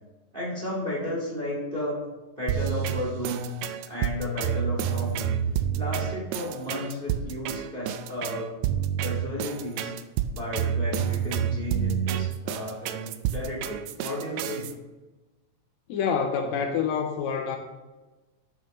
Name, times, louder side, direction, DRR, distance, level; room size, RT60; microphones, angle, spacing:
voice 1, 0.3-2.0 2.4-3.6 3.9-5.3 5.7-8.5 9.0-9.9 10.3-14.7, left 1 dB, 20° right, -4 dB, 1.6 m, -33 dB
sound 1, 2.5-14.7, right 9 dB, 80° right, 1.6 m, -29 dB
voice 2, 15.9-17.6, left 6 dB, 75° left, 4 dB, 1.8 m, -27 dB
11.5 x 5.8 x 3.1 m, 1.2 s
omnidirectional pair, 3.4 m